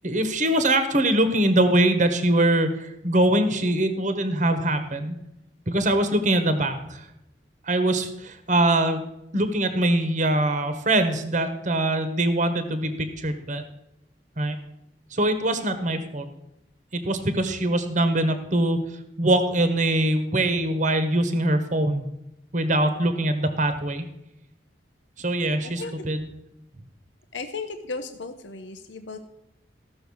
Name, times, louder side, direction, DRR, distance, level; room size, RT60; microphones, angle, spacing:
voice 1, 0.0-5.1 5.7-7.0 7.7-9.0 9.3-13.6 14.4-14.6 15.1-16.3 16.9-18.8 19.2-22.1 22.5-24.0 25.2-26.3, right 1 dB, 40° right, 9 dB, 1.2 m, -23 dB
voice 2, 27.3-29.2, left 4 dB, 85° left, 8 dB, 0.9 m, -35 dB
15.0 x 6.4 x 6.3 m, 0.84 s
head